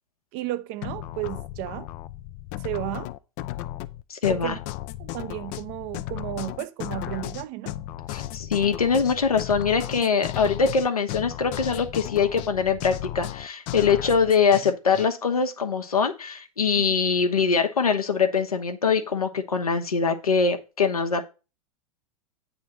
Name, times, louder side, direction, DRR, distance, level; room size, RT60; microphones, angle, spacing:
voice 1, 0.3-1.9 2.6-3.1 4.3-4.6 5.0-7.7 8.1-8.2 16.8-16.9, right 16 dB, 40° right, 0.6 m, -33 dB
sound 1, 0.8-15.1, left 15 dB, 40° left, 0.5 m, -35 dB
voice 2, 4.1-4.6 8.1-21.2, left 5 dB, 80° left, 1.1 m, -23 dB
8.5 x 3.5 x 6.4 m
figure-of-eight pair, 90°, 19 cm